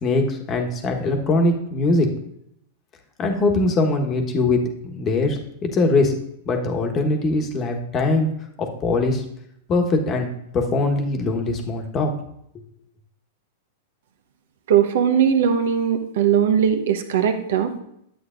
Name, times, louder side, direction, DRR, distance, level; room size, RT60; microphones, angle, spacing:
voice 1, 0.0-2.1 3.2-4.6 4.9-6.1 6.4-8.3 8.6-9.2 9.7-12.1, left 2 dB, 30° left, 3 dB, 1.2 m, -21 dB
voice 2, 14.7-17.7, right 8 dB, 65° right, 7 dB, 0.9 m, -19 dB
10.5 x 8.0 x 2.5 m, 0.73 s
hypercardioid pair, 105°, 0 cm